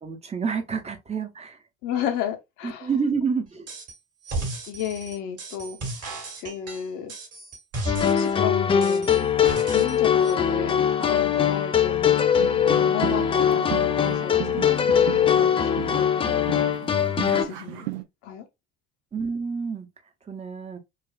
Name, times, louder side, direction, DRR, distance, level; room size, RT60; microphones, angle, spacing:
voice 1, 0.0-1.6 2.6-3.7 19.1-19.9 20.2-20.8, right 5 dB, 20° right, 0.8 m, -28 dB
voice 2, 1.8-2.9 4.7-6.1 6.4-7.1 8.0-9.3 9.7-12.2 12.7-16.7 17.3-17.9 18.2-18.5, left 9 dB, 55° left, 0.9 m, -33 dB
sound 1, 3.7-4.0 4.2-8.4 8.8-10.0 10.2-10.3, right 2 dB, 45° right, 1.7 m, -34 dB
sound 2, 7.9-17.5, left 8 dB, 15° left, 0.3 m, -21 dB
sound 3, 12.4-18.0, right 18 dB, 65° right, 0.6 m, -36 dB
4.0 x 2.4 x 2.2 m
figure-of-eight pair, 60°, 35 cm